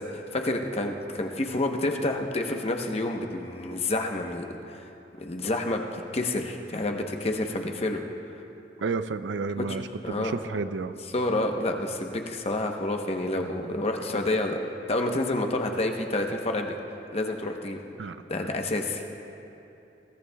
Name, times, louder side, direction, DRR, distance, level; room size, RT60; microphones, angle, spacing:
voice 1, 0.1-4.8 5.2-8.0 9.6-9.7 10.0-10.3 11.1-14.6 14.9-16.7 17.1-17.8 18.3-19.0, left 2 dB, 35° left, 3 dB, 0.9 m, -29 dB
voice 2, 8.8-9.9 10.2-10.9 18.0-18.2, right 4 dB, 85° right, 12 dB, 0.5 m, -31 dB
21.5 x 17.0 x 2.3 m, 2.9 s
head